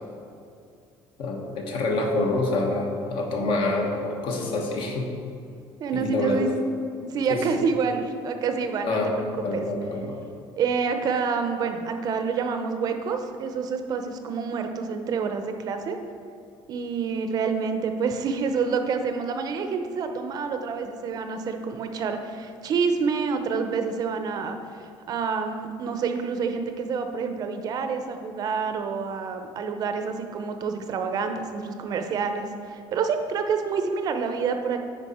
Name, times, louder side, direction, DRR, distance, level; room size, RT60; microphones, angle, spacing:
voice 1, 1.2-5.1 5.9-6.4 7.3-7.7 8.8-9.1 9.4-10.2, left 2 dB, 60° left, 2 dB, 1.2 m, -27 dB
voice 2, 5.8-6.5 7.0-9.0 9.3-9.6 10.6-16.0 16.7-34.8, right 5 dB, 40° right, 6 dB, 0.5 m, -28 dB
9.1 x 5.2 x 4.2 m, 2.4 s
cardioid pair, 165°, 10 cm